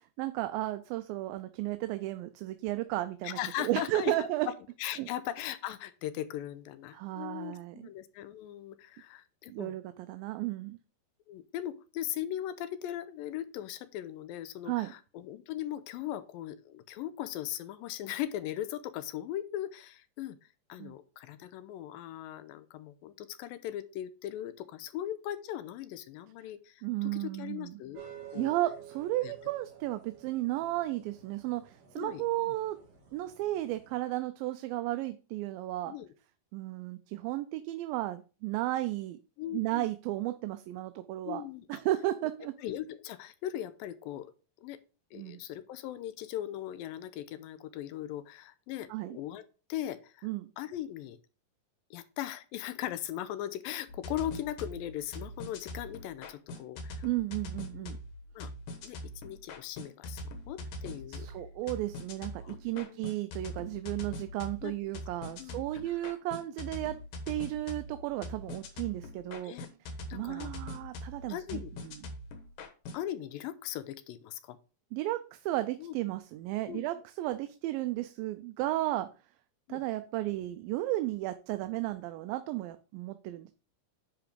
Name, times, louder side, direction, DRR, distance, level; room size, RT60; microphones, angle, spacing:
voice 1, 0.2-4.5 5.0-5.1 6.9-7.9 9.5-10.8 14.7-14.9 20.8-20.9 26.8-27.8 28.4-32.8 33.1-35.9 36.5-39.2 39.5-41.4 41.7-42.6 45.1-45.4 48.9-49.2 50.2-50.5 57.0-58.0 61.1-67.0 67.3-69.6 70.1-72.0 74.9-79.1 79.7-83.5, right 16 dB, 85° right, 10 dB, 2.3 m, -34 dB
voice 2, 3.2-4.2 4.8-9.7 11.3-20.4 20.7-28.0 28.3-28.5 29.2-29.3 32.0-32.5 35.9-36.1 39.4-39.9 41.2-41.7 42.6-44.3 44.6-44.8 45.1-49.4 49.7-50.3 50.6-51.2 51.9-57.1 57.8-58.0 58.4-58.5 58.8-59.0 59.2-61.3 62.4-63.0 64.6-64.7 65.4-66.0 69.4-69.7 70.1-70.5 71.3-71.7 72.9-74.6 75.8-76.0 76.7-76.9 79.7-79.8, left 12 dB, 90° left, 13 dB, 2.4 m, -39 dB
sound 1, 27.9-34.0, right 9 dB, 50° right, 2.8 m, -52 dB
sound 2, 53.9-73.0, left 1 dB, 65° left, 2.5 m, -43 dB
10.0 x 3.8 x 5.0 m, 0.34 s
omnidirectional pair, 4.1 m